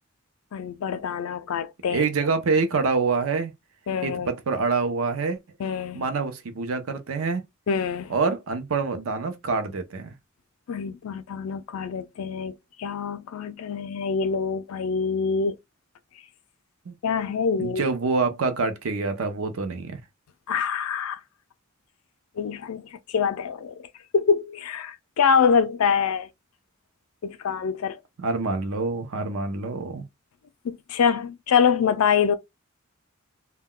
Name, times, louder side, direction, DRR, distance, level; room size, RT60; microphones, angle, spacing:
voice 1, 0.5-2.1 3.9-4.3 5.6-6.0 7.7-8.1 10.7-15.6 17.0-17.8 20.5-21.2 22.4-23.9 24.1-26.3 27.2-28.0 30.6-32.3, left 6 dB, 80° left, 0.4 m, -25 dB
voice 2, 1.9-3.5 4.0-5.4 5.9-7.4 8.1-10.1 16.9-17.0 17.6-20.0 28.2-30.0, right 4 dB, 70° right, 0.6 m, -26 dB
2.2 x 2.2 x 3.6 m
head